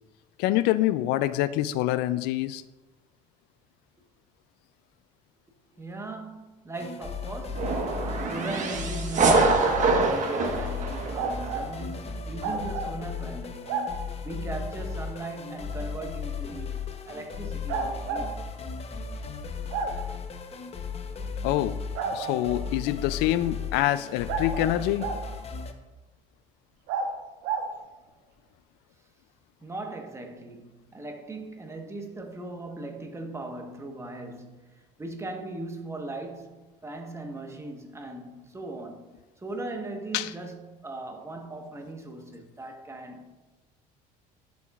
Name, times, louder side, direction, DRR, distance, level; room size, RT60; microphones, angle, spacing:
voice 1, 0.4-2.6 21.4-21.8 22.1-25.1 40.1-40.3, left 14 dB, 75° left, 0.4 m, -26 dB
voice 2, 5.8-7.8 8.2-13.6 14.2-18.3 29.6-34.7 35.0-36.6 36.8-39.1 39.4-43.4, right 2 dB, 15° right, 1.2 m, -39 dB
sound 1, 6.7-25.7, left 5 dB, 35° left, 0.8 m, -36 dB
sound 2, 7.6-11.6, right 3 dB, 45° right, 1.3 m, -25 dB
sound 3, 9.3-9.9 11.1-11.7 12.4-12.9 13.7-13.9 15.7-15.8 17.7-18.3 19.7-19.9 21.9-22.6 24.3-25.2 26.9-27.1 27.4-27.7, right 5 dB, 75° right, 1.2 m, -31 dB
10.5 x 7.0 x 2.4 m
supercardioid pair, 90°, 17 cm